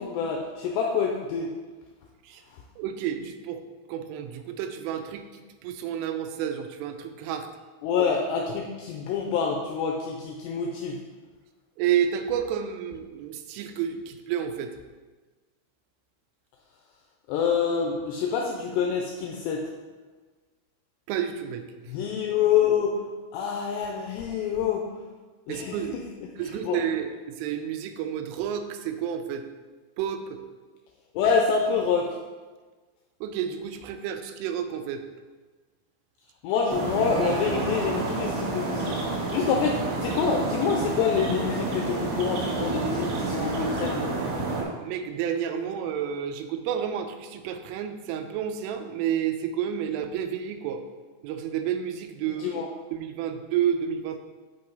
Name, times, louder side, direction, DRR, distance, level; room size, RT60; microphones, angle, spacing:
voice 1, 0.0-1.5 2.5-2.6 7.8-11.0 17.3-19.7 21.9-23.0 23.3-24.9 25.5-25.9 26.2-26.8 31.1-32.2 36.4-44.1 52.3-52.7, left 6 dB, 85° left, 1 dB, 2.4 m, -27 dB
voice 2, 2.8-3.6 3.9-5.3 5.6-7.5 11.8-14.7 21.1-21.6 25.5-26.0 26.4-29.5 30.0-30.4 33.2-35.0 44.5-50.8 51.2-52.6 52.9-54.2, right 9 dB, 90° right, 7 dB, 3.2 m, -30 dB
sound 1, 36.7-44.6, right 3 dB, 70° right, 2.7 m, -29 dB
8.9 x 5.3 x 3.9 m, 1.3 s
omnidirectional pair, 5.6 m